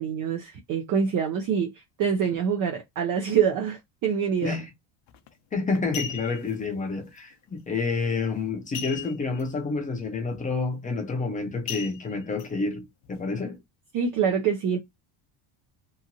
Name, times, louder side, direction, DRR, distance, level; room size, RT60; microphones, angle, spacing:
voice 1, 0.0-4.6 13.9-14.8, right 7 dB, 45° right, 0.5 m, -25 dB
sound 1, 5.1-5.3 5.7-6.5 8.7-9.4 9.7-9.8 10.3-10.6 11.7-12.5 13.0-13.1, left 9 dB, 60° left, 0.7 m, -37 dB
voice 2, 5.5-13.6, left 4 dB, 15° left, 0.6 m, -29 dB
2.9 x 2.4 x 2.6 m
cardioid pair, 150°, 45 cm